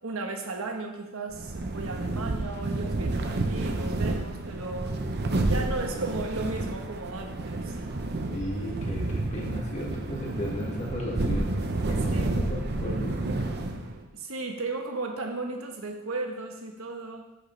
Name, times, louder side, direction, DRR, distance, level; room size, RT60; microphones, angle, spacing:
voice 1, 0.0-5.0 5.5-7.9 12.1-12.4 14.1-17.2, right 3 dB, 85° right, 3 dB, 1.2 m, -35 dB
sound 1, 1.3-14.0, right 2 dB, 50° right, 0.7 m, -30 dB
voice 2, 8.3-13.8, equal, 35° left, -2 dB, 1.8 m, -35 dB
10.0 x 6.4 x 3.3 m, 1.0 s
head